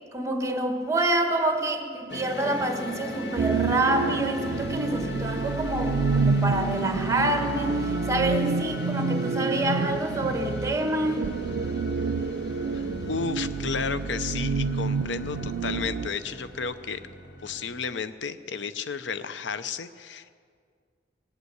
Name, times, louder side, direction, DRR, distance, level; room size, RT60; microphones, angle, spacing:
voice 1, 0.1-11.3, right 1 dB, 15° right, 5 dB, 1.3 m, -27 dB
sound 1, 2.1-17.8, left 1 dB, 70° left, 1.5 m, -38 dB
sound 2, 3.4-16.1, right 4 dB, 85° right, 0.5 m, -28 dB
voice 2, 12.7-17.0 17.4-20.3, left 5 dB, 90° left, 13 dB, 0.6 m, -33 dB
19.5 x 8.2 x 8.0 m, 2.1 s
head